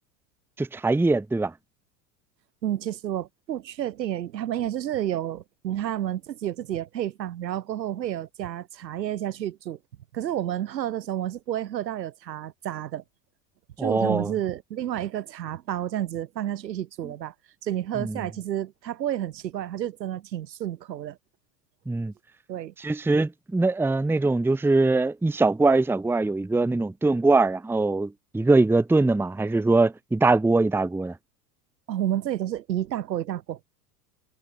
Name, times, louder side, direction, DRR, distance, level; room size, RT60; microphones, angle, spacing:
voice 1, 0.6-1.5 13.8-14.3 18.0-18.1 21.9-22.1 22.8-31.1, right 3 dB, 5° right, 0.9 m, -22 dB
voice 2, 2.6-9.8 10.1-13.0 13.8-17.3 17.6-21.2 22.5-22.7 31.9-33.6, right 11 dB, 90° right, 3.1 m, -30 dB
hypercardioid pair, 100°, 49 cm